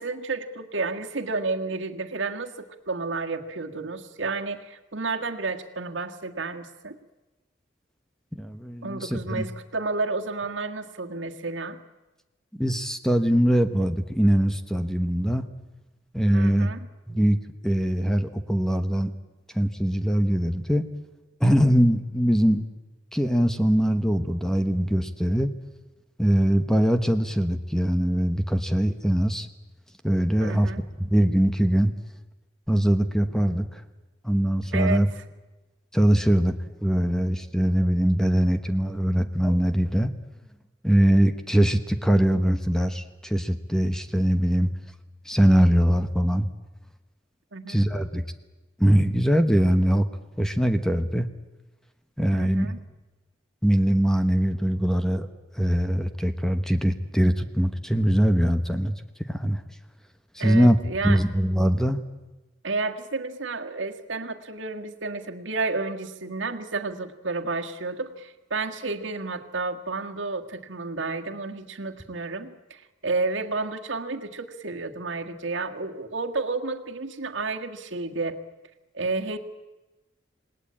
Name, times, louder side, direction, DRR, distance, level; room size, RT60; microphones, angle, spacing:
voice 1, 0.0-7.0 8.8-11.8 16.3-16.8 30.4-30.8 34.7-35.2 47.5-47.8 52.3-52.8 60.4-61.3 62.6-78.4 78.9-79.4, right 3 dB, 80° right, 4 dB, 1.8 m, -31 dB
voice 2, 8.3-9.5 12.5-15.5 16.1-16.7 17.1-17.4 17.6-19.1 19.5-20.9 21.4-22.7 23.1-25.5 26.2-29.5 30.0-30.7 31.0-31.9 32.7-33.8 34.2-35.1 35.9-40.1 40.8-44.7 45.2-46.5 47.7-48.2 48.8-50.1 50.4-51.3 52.2-52.7 53.6-55.3 55.5-58.9 59.3-59.6 60.3-60.8 61.0-62.0, equal, 5° left, 8 dB, 1.1 m, -22 dB
27.5 x 19.5 x 8.7 m, 1.1 s
head